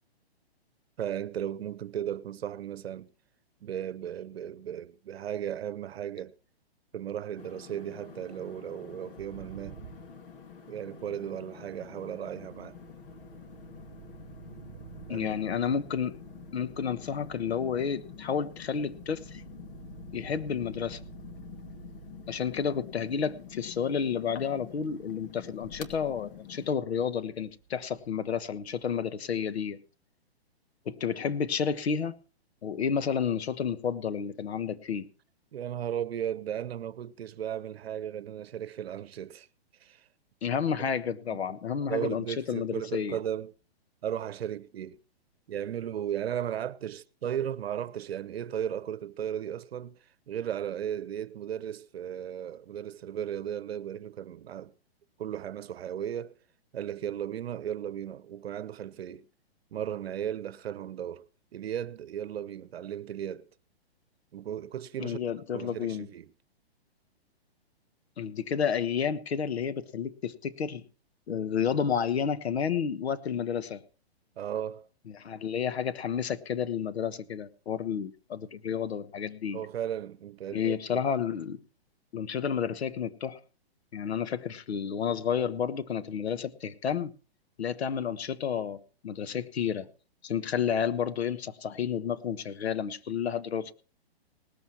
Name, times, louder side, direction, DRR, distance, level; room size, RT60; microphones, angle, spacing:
voice 1, 1.0-3.1 3.6-6.3 6.9-9.8 10.7-12.8 15.1-15.5 35.5-39.5 39.8-40.1 41.3-41.6 41.9-43.5 44.0-45.0 45.5-50.0 50.3-54.7 55.2-56.4 56.7-59.3 59.7-61.2 61.5-63.5 64.3-65.2 65.5-66.3 74.4-74.9 79.5-81.0, right 10 dB, 70° right, 0.9 m, -35 dB
sound 1, 7.4-26.7, left 9 dB, 55° left, 2.3 m, -48 dB
sound 2, 9.2-10.9 11.9-28.9, right 8 dB, 40° right, 1.4 m, -52 dB
voice 2, 15.1-16.2 16.5-19.4 20.1-21.0 22.3-29.8 30.8-32.1 32.6-35.1 40.4-43.2 65.0-66.1 68.2-70.9 71.3-73.8 75.1-79.6 80.5-81.6 82.1-83.4 83.9-87.1 87.6-89.9 90.2-93.7, left 7 dB, 75° left, 1.3 m, -31 dB
18.5 x 14.0 x 3.0 m
hypercardioid pair, 140°, 32 cm